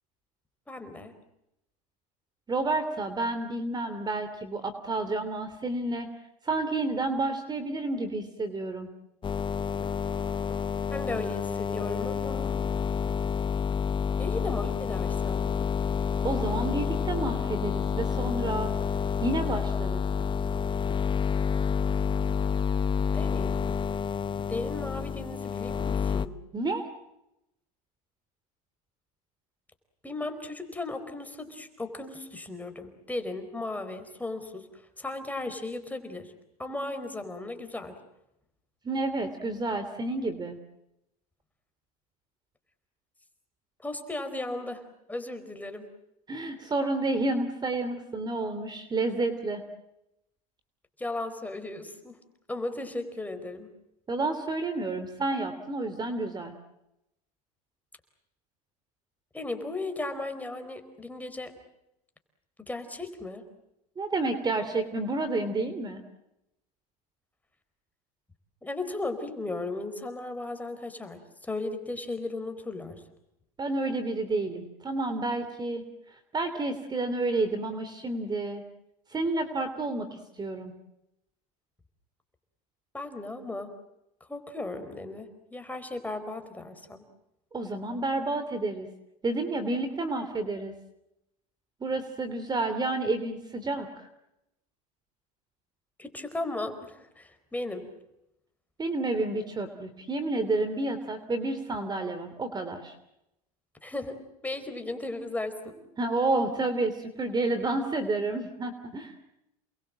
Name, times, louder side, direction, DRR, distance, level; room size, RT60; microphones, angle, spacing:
voice 1, 0.7-1.1 10.8-12.9 14.2-15.5 23.1-23.6 24.5-26.4 30.0-36.3 36.6-38.0 43.8-44.8 45.1-45.9 51.0-52.2 52.5-53.7 59.3-61.5 62.7-63.5 68.6-73.0 82.9-83.7 84.3-87.0 96.0-97.9 103.8-105.8, left 2 dB, 10° left, 7 dB, 4.3 m, -36 dB
voice 2, 2.5-6.1 6.4-8.9 16.2-18.7 19.2-20.0 26.5-26.9 38.8-40.6 46.3-49.6 54.1-56.5 64.0-66.0 73.6-75.8 76.3-78.6 79.1-80.7 87.5-88.9 89.2-90.7 91.8-94.1 98.8-102.9 106.0-109.1, right 2 dB, 20° right, 10 dB, 3.0 m, -30 dB
sound 1, 9.2-26.3, left 6 dB, 25° left, 0.9 m, -29 dB
29.0 x 21.5 x 7.6 m, 0.84 s
supercardioid pair, 100°, 19 cm